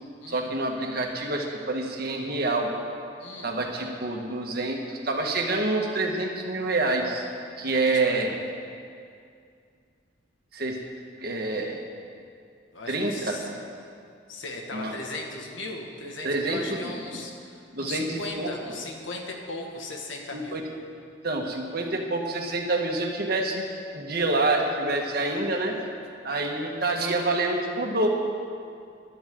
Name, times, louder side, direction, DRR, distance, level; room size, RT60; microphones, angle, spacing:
voice 1, 0.3-2.7 3.4-7.2 7.6-8.3 10.5-10.8 11.2-11.8 12.9-13.4 14.7-15.0 16.2-17.0 17.7-18.5 20.3-20.6 21.2-23.7 23.9-25.7 26.2-28.1, right 2 dB, 55° right, 1 dB, 1.6 m, -27 dB
voice 2, 3.2-3.5 7.8-8.2 12.7-13.6 14.3-20.6, left 2 dB, 80° left, 1 dB, 1.9 m, -38 dB
20.5 x 12.0 x 3.8 m, 2.3 s
head